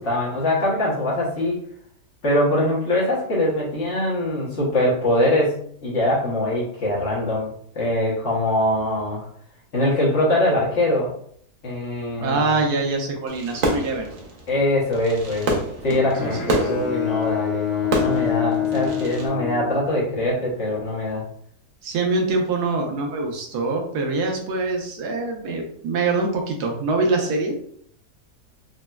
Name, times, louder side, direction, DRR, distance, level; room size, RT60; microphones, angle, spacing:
voice 1, 0.0-1.6 2.2-7.5 7.7-9.3 9.7-11.1 11.6-12.6 14.5-21.2, left 1 dB, 50° left, -5 dB, 1.2 m, -23 dB
voice 2, 12.2-14.1 16.5-16.9 21.8-27.7, right 3 dB, 85° right, 1 dB, 1.2 m, -24 dB
Fireworks, 13.3-19.3, right 1 dB, 65° right, 0.5 m, -29 dB
Bowed string instrument, 16.0-20.3, left 9 dB, 85° left, 1.2 m, -26 dB
4.1 x 2.1 x 2.3 m, 0.63 s
omnidirectional pair, 1.6 m